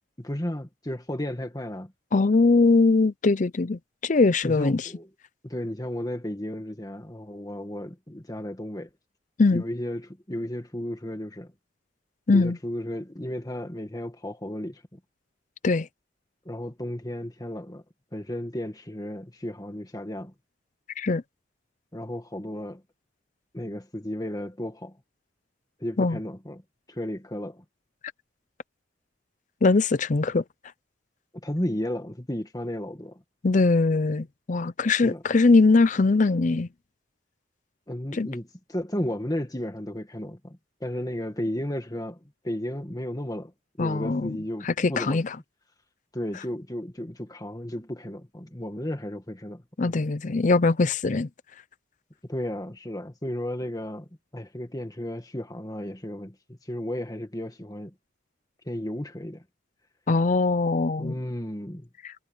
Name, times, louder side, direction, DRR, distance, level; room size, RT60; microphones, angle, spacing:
voice 1, 0.2-1.9 4.4-5.1 5.4-8.9 9.5-11.5 12.3-15.0 16.5-17.8 18.1-20.3 21.9-22.8 23.5-25.0 25.8-26.6 26.9-27.6 31.4-33.2 35.0-35.2 37.9-43.5 43.8-45.2 46.1-50.0 52.3-57.9 58.7-59.4 61.0-61.9, left 1 dB, 20° left, 1.9 m, -34 dB
voice 2, 2.1-4.9 9.4-9.6 12.3-12.6 15.6-15.9 21.0-21.2 26.0-26.2 29.6-30.4 33.4-36.7 38.1-38.3 43.8-44.4 44.6-45.3 49.8-51.3 60.1-61.1, left 3 dB, 40° left, 0.5 m, -21 dB
head